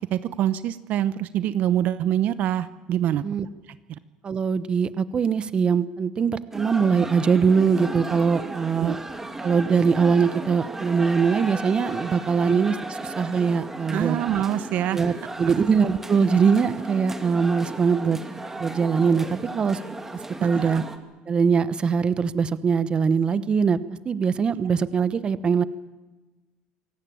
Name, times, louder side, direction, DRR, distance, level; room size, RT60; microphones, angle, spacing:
voice 1, 0.1-3.2 8.8-9.0 13.9-15.0 15.5-15.6 20.4-20.8, right 11 dB, 55° right, 14 dB, 0.9 m, -25 dB
voice 2, 4.2-9.0 9.4-14.2 14.9-18.2 18.6-19.8 20.4-20.8 21.3-23.8 24.0-25.6, right 6 dB, 30° right, 15 dB, 1.1 m, -22 dB
sound 1, 6.5-21.0, right 2 dB, 10° right, 2.5 m, -35 dB
26.5 x 17.5 x 8.7 m, 1.2 s
cardioid pair, 115°, 3 cm